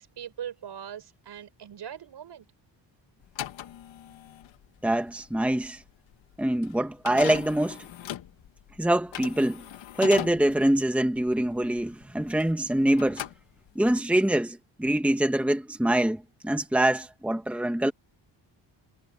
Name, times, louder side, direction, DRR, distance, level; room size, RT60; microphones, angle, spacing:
voice 1, 0.0-2.5, right 9 dB, 65° right, 6.1 m, -40 dB
sound 1, 3.2-12.7 12.9-14.0, left 11 dB, 85° left, 1.5 m, -39 dB
voice 2, 4.8-5.8 6.4-7.9 8.8-9.6 10.0-13.2 13.7-17.9, right 1 dB, 5° right, 1.4 m, -24 dB
wide cardioid pair, 170°, 44 cm